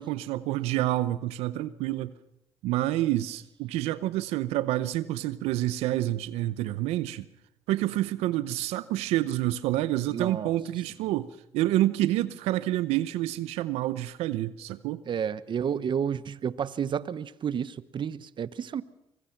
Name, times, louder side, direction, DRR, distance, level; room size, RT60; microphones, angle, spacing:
voice 1, 0.0-2.1 2.6-7.3 7.7-15.0, right 15 dB, 85° right, 15 dB, 0.7 m, -28 dB
voice 2, 10.1-10.5 15.1-18.8, right 8 dB, 50° right, 17 dB, 0.9 m, -31 dB
24.5 x 21.5 x 5.9 m, 0.83 s
supercardioid pair, 75°, 10 cm